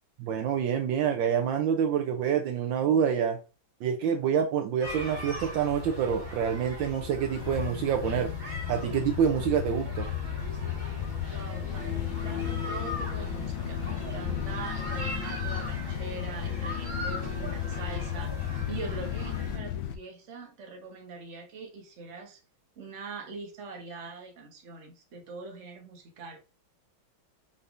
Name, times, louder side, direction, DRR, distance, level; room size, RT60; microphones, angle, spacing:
voice 1, 0.2-3.4 3.8-8.3 8.7-10.1, right 8 dB, 75° right, 1.2 m, -27 dB
sound 1, 4.8-19.6, left 2 dB, 25° right, 1.3 m, -38 dB
sound 2, 7.4-20.0, left 11 dB, 75° left, 1.3 m, -34 dB
voice 2, 11.3-18.3 18.7-22.4 22.8-26.4, right 4 dB, 45° right, 1.2 m, -42 dB
5.5 x 3.5 x 2.4 m
omnidirectional pair, 2.2 m